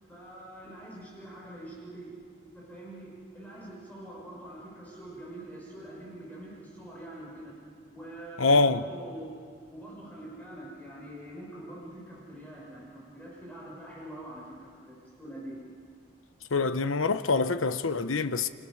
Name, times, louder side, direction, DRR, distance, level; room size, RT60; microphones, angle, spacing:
voice 1, 0.0-2.2 2.5-7.6 7.9-9.4 9.7-15.6, right 1 dB, 10° left, 5.5 m, -44 dB
voice 2, 8.4-8.8 16.5-18.5, left 3 dB, 85° left, 1.0 m, -25 dB
30.0 x 26.0 x 6.5 m
head